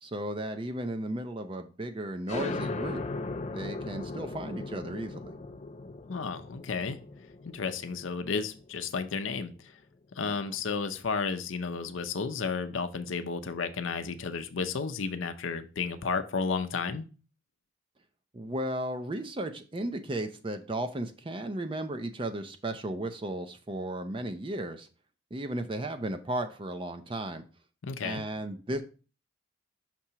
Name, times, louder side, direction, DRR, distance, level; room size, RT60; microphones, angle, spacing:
voice 1, 0.0-3.0 3.5-5.3 10.2-10.6 18.3-24.9 25.3-27.4 28.0-28.8, right 1 dB, 25° right, 0.4 m, -35 dB
sound 1, 2.3-9.5, left 3 dB, 35° left, 0.3 m, -38 dB
voice 2, 6.1-7.0 7.4-9.5 10.1-17.1 27.8-28.3, left 5 dB, 85° left, 0.6 m, -32 dB
6.0 x 2.9 x 5.5 m
head